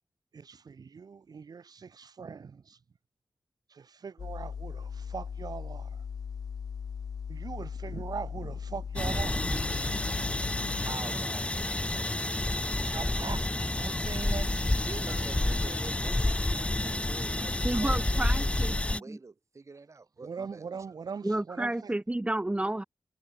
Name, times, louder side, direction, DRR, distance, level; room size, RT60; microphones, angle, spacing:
voice 1, 0.3-2.8 3.7-6.0 7.3-9.5 12.9-15.9 16.8-17.0 20.2-21.9, right 5 dB, 75° right, 4.9 m, -41 dB
sound 1, 4.2-11.0, left 6 dB, 65° left, 0.4 m, -38 dB
sound 2, 9.0-19.0, left 2 dB, 20° left, 0.7 m, -29 dB
voice 2, 10.6-12.3 14.8-21.0, right 4 dB, 50° right, 4.3 m, -48 dB
voice 3, 17.6-19.2 21.2-22.8, right 1 dB, 15° right, 1.3 m, -31 dB
wide cardioid pair, 85°, 7 cm